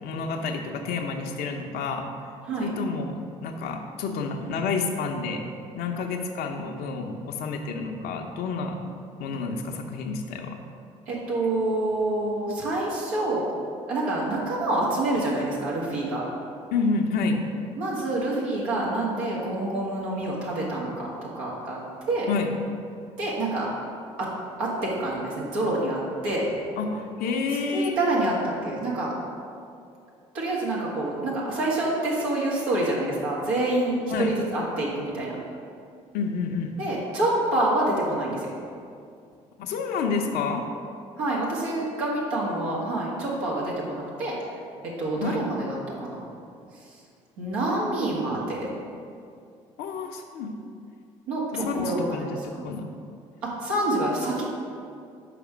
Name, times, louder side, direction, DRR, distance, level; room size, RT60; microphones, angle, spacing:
voice 1, 0.0-2.1 2.6-5.5 5.7-8.8 9.2-10.6 16.7-17.4 22.3-22.5 26.8-28.0 34.1-34.3 36.1-36.8 39.6-40.7 45.2-45.4 49.8-50.5 51.5-52.9, left 4 dB, 70° left, 3 dB, 0.8 m, -29 dB
voice 2, 11.1-13.5 13.9-16.2 17.8-21.8 22.1-22.3 23.2-23.7 24.2-24.3 24.6-26.5 27.7-29.1 30.3-35.4 36.8-38.6 41.2-44.4 44.8-46.2 47.4-48.7 51.3-52.7 53.4-54.4, right 2 dB, 85° right, -6 dB, 1.8 m, -27 dB
6.0 x 5.0 x 6.2 m, 2.4 s
hypercardioid pair, 55°, 16 cm